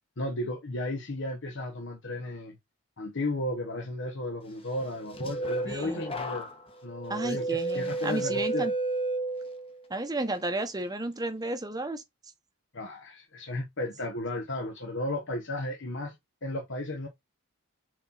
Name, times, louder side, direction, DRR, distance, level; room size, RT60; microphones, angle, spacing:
voice 1, 0.2-2.6 3.0-6.5 6.8-7.4 7.7-8.7 12.7-16.2 16.4-17.1, left 1 dB, 55° left, 1.2 m, -34 dB
sound 1, 4.8-9.8 10.3-10.7, right 2 dB, 25° left, 1.2 m, -32 dB
voice 2, 5.7-6.0 7.1-8.7 9.9-12.0, right 2 dB, 15° right, 1.0 m, -32 dB
6.4 x 4.3 x 4.1 m
head